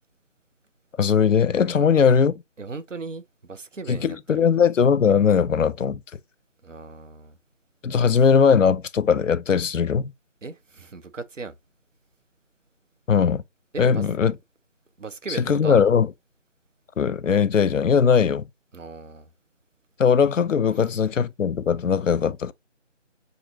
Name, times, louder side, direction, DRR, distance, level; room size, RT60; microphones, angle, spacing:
voice 1, 1.0-2.3 3.9-6.0 7.8-10.1 13.1-13.4 13.8-14.3 15.5-16.1 17.0-18.5 20.0-22.5, left 6 dB, 80° left, 0.5 m, -19 dB
voice 2, 2.6-4.4 6.6-7.4 10.4-11.5 13.7-14.1 15.0-15.9 18.7-19.3, right 4 dB, 80° right, 0.9 m, -37 dB
6.4 x 2.6 x 2.7 m
figure-of-eight pair, 165°, 38 cm